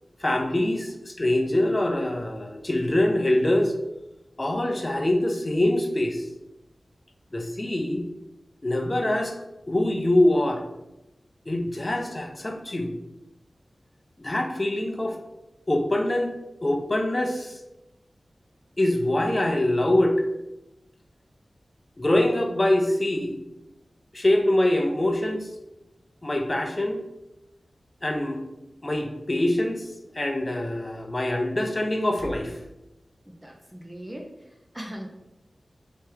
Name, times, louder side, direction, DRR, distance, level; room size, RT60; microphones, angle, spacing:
voice 1, 0.2-3.7 4.4-6.2 7.3-8.1 8.6-9.4 9.7-10.6 11.5-12.9 14.2-15.2 15.7-16.3 16.6-17.6 18.8-20.2 22.0-23.3 24.1-25.5 26.2-27.0 28.0-28.4 28.8-29.9 30.1-32.6, left 1 dB, 30° left, 3 dB, 0.6 m, -24 dB
voice 2, 33.3-35.1, equal, 15° right, 1 dB, 0.5 m, -40 dB
3.3 x 3.0 x 3.2 m, 0.92 s
wide cardioid pair, 65°, 0 cm